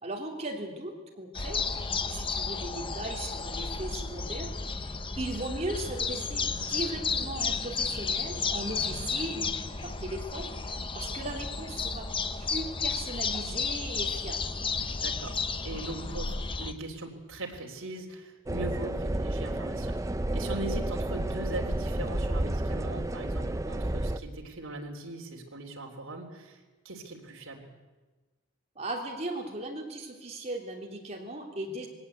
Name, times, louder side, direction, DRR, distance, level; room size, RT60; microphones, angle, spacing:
voice 1, 0.0-12.1 12.5-14.6 28.7-31.9, right 1 dB, 30° right, 0 dB, 3.4 m, -38 dB
sound 1, 1.3-16.7, left 4 dB, 25° left, 0.8 m, -33 dB
voice 2, 14.9-19.9 20.3-27.7, right 2 dB, 70° right, 1 dB, 3.5 m, -40 dB
sound 2, 18.5-24.2, right 1 dB, 15° right, 0.6 m, -31 dB
21.0 x 17.5 x 8.3 m, 1.3 s
head